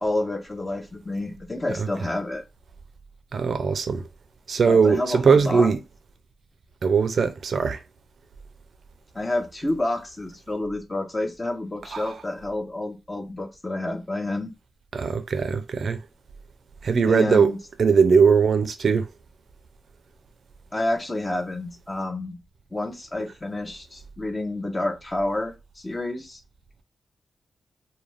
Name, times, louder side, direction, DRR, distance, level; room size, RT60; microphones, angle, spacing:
voice 1, 0.0-2.4 4.7-5.7 9.1-14.5 17.1-17.6 20.7-22.4 22.7-26.4, left 2 dB, 20° left, 0.6 m, -29 dB
voice 2, 3.3-4.0 4.5-5.8 6.8-7.8 11.9-12.1 14.9-16.0 16.8-17.5 17.8-19.1, right 5 dB, 65° right, 0.4 m, -20 dB
2.4 x 2.2 x 3.1 m
cardioid pair, 85°, 0 cm